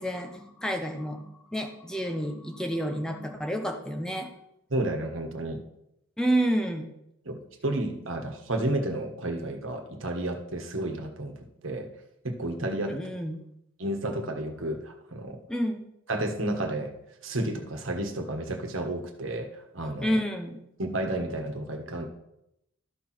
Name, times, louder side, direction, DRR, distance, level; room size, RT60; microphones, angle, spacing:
voice 1, 0.0-4.3 6.2-6.9 12.9-13.4 15.5-15.9 20.0-20.6, equal, 5° left, 3 dB, 0.8 m, -29 dB
voice 2, 4.7-5.6 7.2-11.9 12.2-13.0 13.8-15.4 16.1-16.9 17.2-20.2 20.8-22.1, right 1 dB, 85° right, 5 dB, 1.4 m, -31 dB
13.0 x 4.6 x 5.9 m, 0.81 s
head